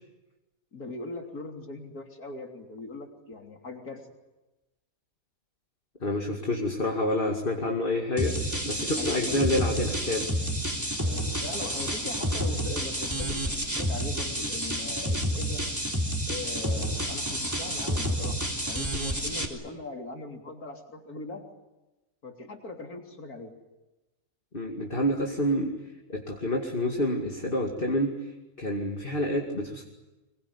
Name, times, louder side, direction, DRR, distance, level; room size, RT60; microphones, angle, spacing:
voice 1, 0.7-4.1 9.0-9.4 11.4-15.6 16.3-18.4 18.7-21.4 22.2-23.5, left 3 dB, 85° left, 2 dB, 3.8 m, -40 dB
voice 2, 6.0-10.3 24.5-25.7 26.1-28.1 28.6-29.8, left 1 dB, 35° left, 1 dB, 2.6 m, -28 dB
sound 1, 8.2-19.5, equal, 10° right, 3.3 m, -29 dB
26.0 x 22.0 x 9.8 m, 1.1 s
omnidirectional pair, 1.5 m